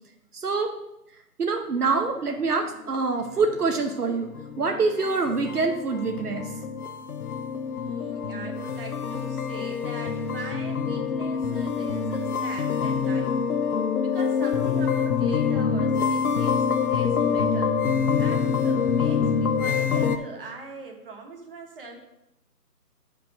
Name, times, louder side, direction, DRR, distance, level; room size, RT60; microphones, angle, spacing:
voice 1, 0.3-0.7 1.4-4.3 4.6-6.5, right 4 dB, 70° right, 4 dB, 1.1 m, -25 dB
sound 1, 3.2-20.2, left 6 dB, 65° left, 0.8 m, -26 dB
voice 2, 7.7-13.4 14.0-17.8 18.2-22.0, right 3 dB, 35° right, 1 dB, 1.4 m, -41 dB
6.8 x 5.1 x 5.9 m, 0.88 s
figure-of-eight pair, 160°, 48 cm